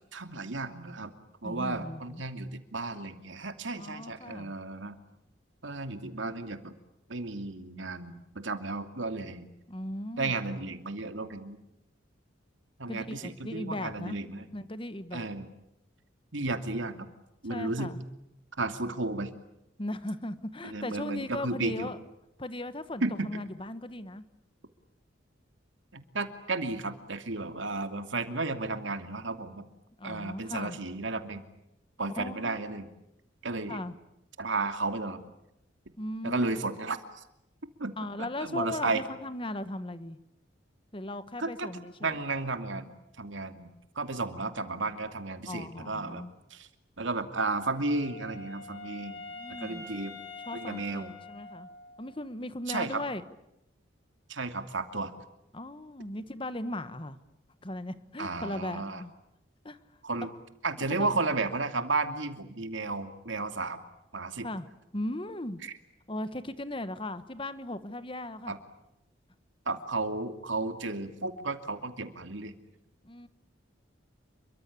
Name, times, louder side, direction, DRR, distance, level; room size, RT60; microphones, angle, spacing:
voice 1, 0.1-1.1 1.4-5.0 5.6-6.7 7.1-9.5 10.2-11.6 12.8-14.5 15.1-15.5 16.3-17.1 17.4-17.9 18.6-19.3 20.6-21.9 23.0-23.3 25.9-29.6 30.0-31.5 32.0-32.9 33.4-33.8 34.4-35.2 36.2-37.2 37.8-37.9 38.2-39.0 41.4-41.7 42.0-42.9 43.2-46.2 46.5-46.7 47.0-49.2 49.5-50.2 50.5-51.1 52.7-53.0 54.3-55.1 58.2-59.0 60.0-60.3 60.6-63.8 64.1-64.5 65.6-65.7 68.5-68.6 69.7-72.5, right 3 dB, 80° right, 8 dB, 2.7 m, -33 dB
voice 2, 1.4-2.2 3.8-4.5 9.7-10.3 12.9-14.2 14.5-15.3 17.5-18.0 19.8-22.0 22.4-24.3 30.0-30.8 32.2-32.6 33.7-33.9 36.0-36.5 38.0-40.2 40.9-42.2 45.5-46.3 49.3-49.8 50.5-51.7 52.0-53.2 55.5-57.2 57.6-59.1 59.6-59.8 64.4-64.7 64.9-65.6 66.1-68.5 73.0-73.3, left 1 dB, 25° left, 12 dB, 1.4 m, -37 dB
Wind instrument woodwind instrument, 47.4-52.1, left 3 dB, 60° left, 6.2 m, -45 dB
29.0 x 24.0 x 8.6 m, 0.84 s
head